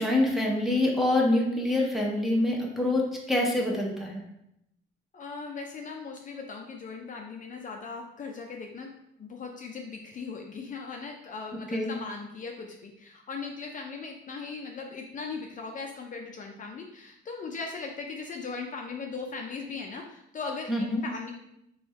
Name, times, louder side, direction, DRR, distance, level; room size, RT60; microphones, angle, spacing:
voice 1, 0.0-4.2 11.7-11.9 20.7-21.0, left 1 dB, ahead, -2 dB, 0.7 m, -26 dB
voice 2, 5.1-8.9 9.2-21.3, left 4 dB, 40° left, 2 dB, 0.4 m, -38 dB
3.2 x 2.3 x 4.1 m, 0.80 s
cardioid pair, 120°, 20 cm